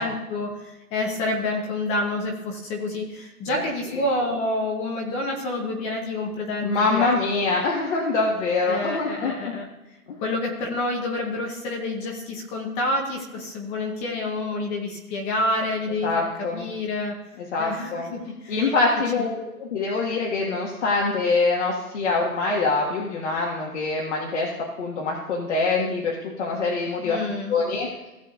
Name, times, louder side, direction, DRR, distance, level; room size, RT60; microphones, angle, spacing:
voice 1, 0.0-7.1 8.7-9.7 10.2-17.1 17.6-18.6 27.0-27.6, left 2 dB, 15° left, 1 dB, 1.0 m, -28 dB
voice 2, 6.6-9.6 10.1-10.2 16.0-16.7 17.4-18.1 18.5-19.3 19.6-24.5 24.8-27.2 27.5-27.9, left 3 dB, 50° left, -3 dB, 1.8 m, -24 dB
16.5 x 7.3 x 2.5 m, 1.0 s
hypercardioid pair, 145°, 45 cm